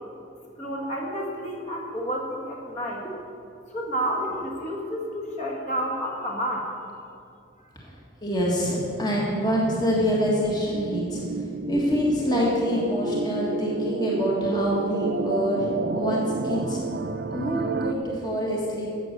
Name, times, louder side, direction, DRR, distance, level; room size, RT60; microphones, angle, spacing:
voice 1, 0.6-3.0 3.7-6.7 9.4-9.6, equal, 40° left, -1 dB, 1.8 m, -30 dB
voice 2, 8.2-11.2 11.7-15.7 16.0-16.8 17.3-18.9, equal, 20° left, -4 dB, 1.6 m, -26 dB
sound 1, 8.6-17.9, right 3 dB, 60° right, 0.5 m, -30 dB
12.0 x 8.4 x 6.6 m, 2.6 s
head